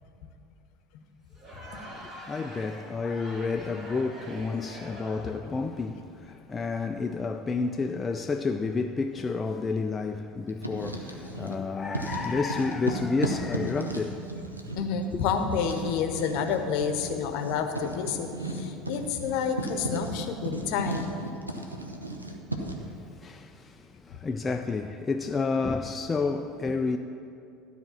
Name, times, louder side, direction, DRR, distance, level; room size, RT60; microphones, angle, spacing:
Crowd, 1.3-5.5, right 1 dB, 35° right, 1.9 m, -45 dB
voice 1, 1.8-14.3 22.8-27.0, left 4 dB, 20° left, 0.3 m, -30 dB
Writing, 10.5-11.6 11.9-22.9, right 2 dB, 85° right, 0.7 m, -35 dB
voice 2, 14.8-21.2, left 6 dB, 55° left, 0.8 m, -29 dB
12.5 x 4.3 x 7.1 m
figure-of-eight pair, 70°, 0 cm